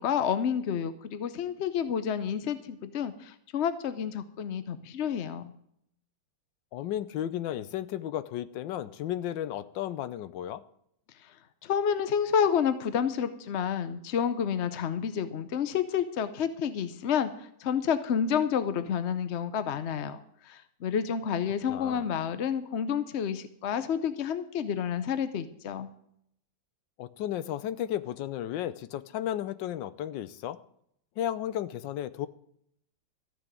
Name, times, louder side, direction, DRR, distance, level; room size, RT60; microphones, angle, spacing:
voice 1, 0.0-5.5 11.2-11.3 11.6-25.9, left 7 dB, 60° left, 11 dB, 0.7 m, -29 dB
voice 2, 6.7-10.6 21.7-22.0 27.0-30.6 31.2-32.3, left 11 dB, 80° left, 15 dB, 1.4 m, -34 dB
14.0 x 6.3 x 9.0 m, 0.71 s
omnidirectional pair, 2.0 m